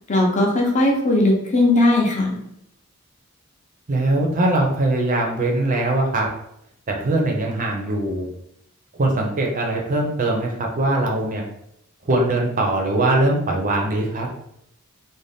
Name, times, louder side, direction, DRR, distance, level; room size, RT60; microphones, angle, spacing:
voice 1, 0.1-2.4, left 2 dB, 35° left, -1 dB, 0.6 m, -18 dB
voice 2, 3.9-6.3 6.9-8.3 9.0-11.4 12.0-14.3, right 2 dB, 40° right, 0 dB, 0.5 m, -21 dB
2.5 x 2.2 x 3.3 m, 0.76 s
head